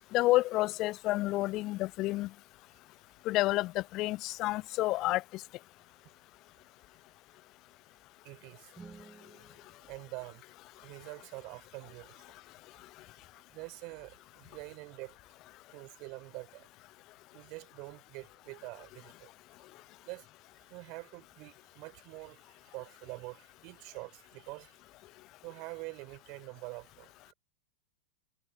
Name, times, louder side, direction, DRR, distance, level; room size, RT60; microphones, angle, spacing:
voice 1, 0.1-2.3 3.3-5.2, left 18 dB, 40° left, 0.3 m, -29 dB
voice 2, 8.2-8.7 9.9-10.4 10.8-12.2 13.5-15.2 15.7-16.7 17.3-19.3 20.0-20.2 20.7-24.7 25.4-27.3, right 27 dB, 40° right, 6.3 m, -46 dB
sound 1, 8.7-10.9, right 5 dB, 15° right, 2.2 m, -55 dB
figure-of-eight pair, 90°, 0 cm